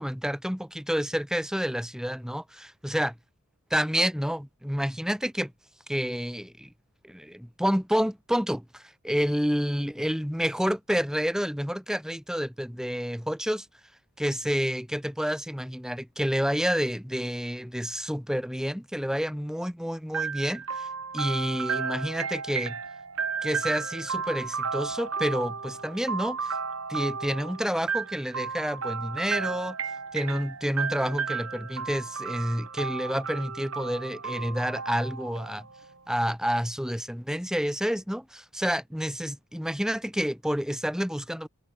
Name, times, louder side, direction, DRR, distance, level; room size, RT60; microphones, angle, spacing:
voice 1, 0.0-3.1 3.7-5.5 5.9-6.7 7.0-13.7 14.2-20.9 21.1-22.7 23.4-26.5 26.9-29.8 30.1-35.7 36.1-41.5, equal, 5° right, 2.9 m, -29 dB
sound 1, 20.1-35.9, right 5 dB, 70° right, 3.3 m, -33 dB
head